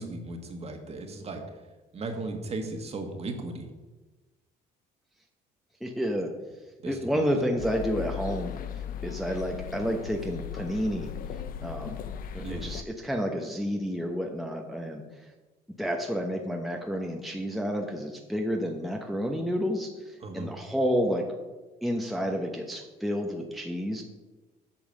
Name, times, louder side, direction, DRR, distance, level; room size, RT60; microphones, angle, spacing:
voice 1, 0.0-1.4 1.9-3.7 6.8-7.3 12.4-12.7 20.2-20.5, right 2 dB, 35° right, 4 dB, 1.6 m, -36 dB
voice 2, 5.8-6.3 6.8-8.5 9.0-11.1 11.6-12.0 12.3-15.3 15.8-21.3 21.8-24.0, equal, ahead, 2 dB, 0.9 m, -30 dB
sound 1, 7.6-12.8, left 8 dB, 55° left, 0.6 m, -37 dB
8.9 x 5.5 x 6.5 m, 1.2 s
cardioid pair, 110°, 17 cm